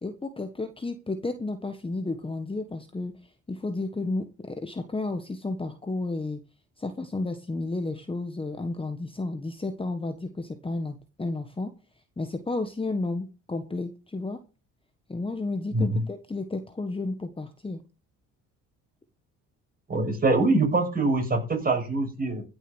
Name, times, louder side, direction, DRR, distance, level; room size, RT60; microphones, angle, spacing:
voice 1, 0.0-3.1 3.5-6.4 6.8-11.7 12.2-14.4 15.1-17.8, left 2 dB, 15° left, 7 dB, 1.4 m, -32 dB
voice 2, 15.7-16.0 19.9-22.4, right 2 dB, 30° right, 3 dB, 6.5 m, -24 dB
15.5 x 7.0 x 6.3 m, 0.32 s
cardioid pair, 95°, 32 cm